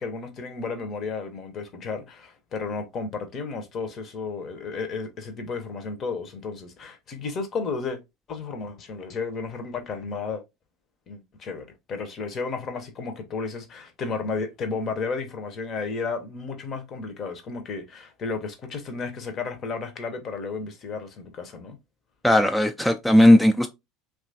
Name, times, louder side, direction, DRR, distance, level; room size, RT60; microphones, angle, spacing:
voice 1, 0.0-8.0 8.3-10.4 11.1-21.8, left 4 dB, 45° left, 0.7 m, -33 dB
voice 2, 22.2-23.7, left 1 dB, 5° left, 0.3 m, -17 dB
2.9 x 2.3 x 2.6 m
hypercardioid pair, 75°, 0 cm